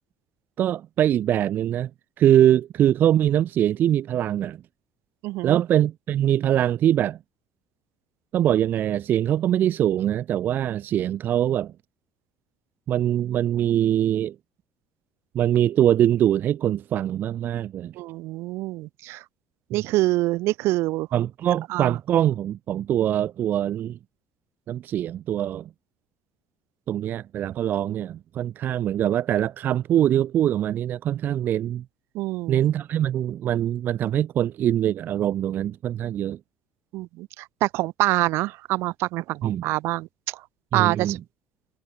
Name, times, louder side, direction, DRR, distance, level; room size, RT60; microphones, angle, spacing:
voice 1, 0.6-1.9 2.2-4.6 5.4-7.2 8.3-11.7 12.9-14.4 15.3-17.9 21.1-24.0 24.7-25.7 26.9-31.8 32.5-36.4 39.4-39.7 40.7-41.2, right 11 dB, 45° right, 0.4 m, -23 dB
voice 2, 5.2-5.6 18.0-19.2 19.7-21.1 21.7-22.0 32.1-32.6 36.9-40.1 40.7-41.2, right 19 dB, 70° right, 1.0 m, -25 dB
cardioid pair, 125°, 5 cm